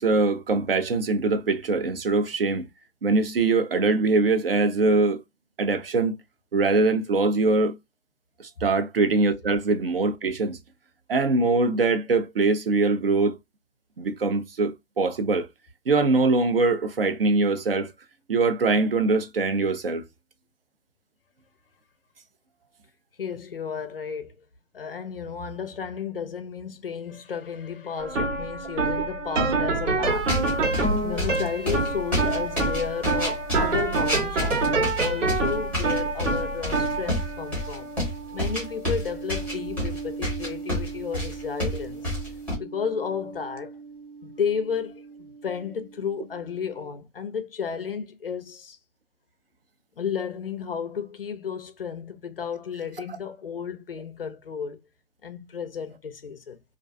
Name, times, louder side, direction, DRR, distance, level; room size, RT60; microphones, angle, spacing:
voice 1, 0.0-2.7 3.0-5.2 5.6-6.1 6.5-7.7 8.4-10.6 11.1-13.4 14.0-15.5 15.9-17.9 18.3-20.0, right 3 dB, 50° right, 0.4 m, -22 dB
voice 2, 23.2-24.4 24.7-30.4 30.8-37.9 38.3-42.1 42.6-43.7 44.2-48.8 50.0-54.8 55.2-56.6, left 6 dB, 50° left, 0.4 m, -33 dB
sound 1, 28.0-45.2, right 3 dB, 70° right, 1.1 m, -28 dB
sound 2, 30.0-42.6, left 1 dB, 10° right, 0.9 m, -29 dB
2.4 x 2.2 x 2.4 m
hypercardioid pair, 165°, 38 cm